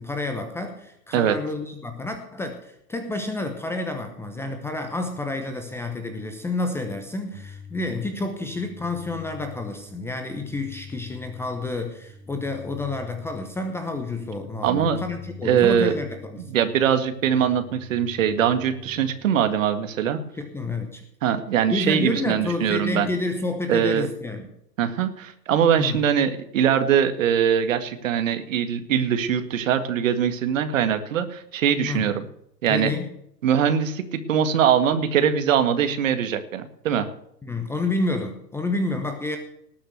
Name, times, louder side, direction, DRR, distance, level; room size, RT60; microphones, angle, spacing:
voice 1, 0.0-16.4 20.3-21.0 21.7-24.5 25.8-26.0 31.8-32.1 32.7-33.1 37.4-39.4, left 2 dB, 5° left, 6 dB, 0.9 m, -29 dB
sound 1, 7.3-19.4, left 5 dB, 80° right, 2.1 m, -45 dB
voice 2, 14.6-15.0 15.4-15.9 16.5-20.2 21.2-23.1 23.7-24.1 24.8-32.2 32.6-32.9 33.4-37.1, right 8 dB, 50° right, 9 dB, 2.0 m, -22 dB
19.0 x 6.5 x 8.0 m, 0.73 s
figure-of-eight pair, 120°, 50 cm